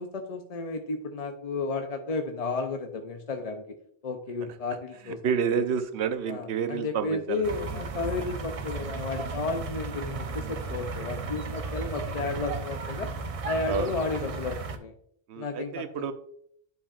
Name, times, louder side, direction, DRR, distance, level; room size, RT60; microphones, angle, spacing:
voice 1, 0.0-3.8 4.0-5.7 6.3-13.1 13.4-14.9 15.4-15.8, left 3 dB, 45° left, 5 dB, 0.5 m, -33 dB
voice 2, 5.1-7.6 13.7-13.9 15.3-16.1, right 7 dB, 80° right, 10 dB, 0.9 m, -29 dB
sound 1, 7.4-14.8, right 4 dB, 45° right, 0.5 m, -35 dB
10.0 x 4.7 x 2.4 m, 0.66 s
omnidirectional pair, 1.1 m